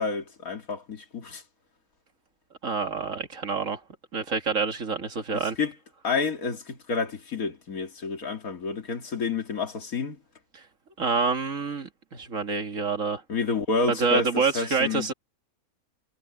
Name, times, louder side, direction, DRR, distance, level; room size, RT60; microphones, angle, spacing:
voice 1, 0.0-1.4 5.3-5.7 6.0-10.2 13.3-15.1, left 4 dB, 90° left, 2.7 m, -29 dB
voice 2, 2.6-3.8 4.1-5.6 10.5-10.6 11.0-13.2 13.9-15.1, right 4 dB, 65° right, 2.3 m, -27 dB
omnidirectional pair, 1.5 m